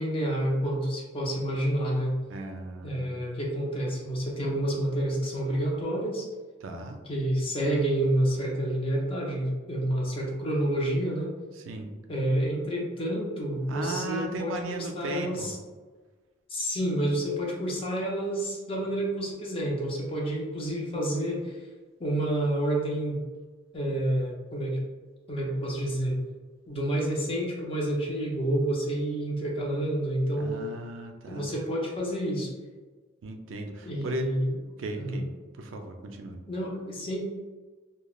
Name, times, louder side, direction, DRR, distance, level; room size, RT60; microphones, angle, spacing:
voice 1, 0.0-2.2 2.8-6.3 7.1-11.3 12.1-15.6 16.5-21.6 22.0-23.2 23.7-24.8 25.3-26.2 26.7-30.6 31.3-32.5 33.9-34.5 35.0-35.2 36.5-37.2, right 1 dB, 25° left, -3 dB, 0.5 m, -29 dB
voice 2, 2.3-3.2 6.6-7.0 11.5-11.9 13.7-15.5 30.4-31.4 33.2-34.3 34.8-35.3 35.6-36.4, right 2 dB, 70° right, 4 dB, 0.4 m, -36 dB
3.0 x 2.2 x 2.3 m, 1.4 s
head